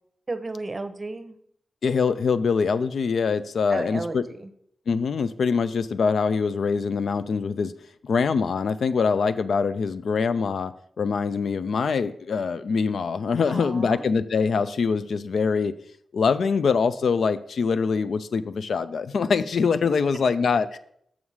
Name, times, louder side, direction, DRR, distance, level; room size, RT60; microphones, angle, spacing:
voice 1, 0.3-1.4 3.7-4.5 13.4-14.0, right 2 dB, 35° right, 9 dB, 0.7 m, -33 dB
voice 2, 1.8-4.2 4.9-7.7 8.0-15.7 16.1-20.8, left 5 dB, 75° left, 12 dB, 0.4 m, -24 dB
6.1 x 5.6 x 4.7 m, 0.68 s
cardioid pair, 75°, 0 cm